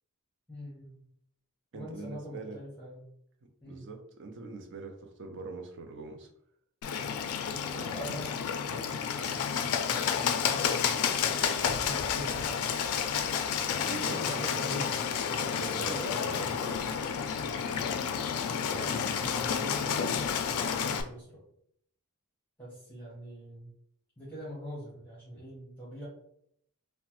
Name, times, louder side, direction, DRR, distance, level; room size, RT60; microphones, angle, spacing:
voice 1, 0.5-1.0 1.7-3.1 3.6-3.9 7.7-11.2 11.8-12.7 14.1-14.9 18.4-21.4 22.6-23.7 24.2-26.1, equal, 10° left, -7 dB, 0.9 m, -43 dB
voice 2, 1.7-2.6 3.7-6.3 13.6-14.7 15.4-16.7, right 3 dB, 55° right, 5 dB, 0.5 m, -42 dB
Bird, 6.8-21.0, left 7 dB, 75° left, 0.3 m, -30 dB
3.0 x 2.1 x 2.9 m, 0.70 s
head